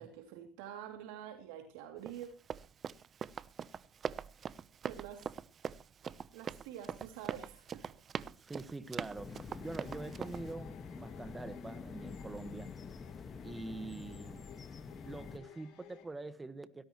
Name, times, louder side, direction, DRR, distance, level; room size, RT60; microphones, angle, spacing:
voice 1, 0.0-2.3 4.8-5.3 6.3-7.9, right 10 dB, 75° right, 2.7 m, -47 dB
Run, 2.1-10.5, right 7 dB, 35° right, 0.7 m, -42 dB
voice 2, 8.4-12.7 13.4-14.5 15.0-16.8, right 3 dB, 15° right, 1.4 m, -45 dB
sound 1, 9.2-15.4, left 5 dB, 25° left, 1.5 m, -47 dB
sound 2, 9.6-16.0, left 9 dB, 65° left, 7.4 m, -58 dB
18.5 x 16.5 x 3.1 m
supercardioid pair, 105°, 0 cm